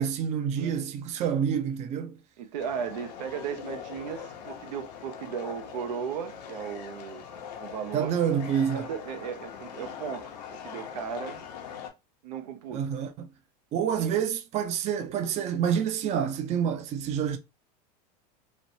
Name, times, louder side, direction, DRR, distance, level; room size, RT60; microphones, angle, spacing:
voice 1, 0.0-2.2 7.9-8.9 12.7-13.3 13.7-17.4, right 8 dB, 35° right, 0.4 m, -28 dB
voice 2, 2.4-7.3 7.6-8.2 8.7-11.4 12.2-12.8 14.0-14.2, right 7 dB, 85° right, 0.6 m, -36 dB
sound 1, 2.6-11.9, left 8 dB, 85° left, 0.7 m, -42 dB
3.1 x 2.0 x 2.6 m
supercardioid pair, 115°, 21 cm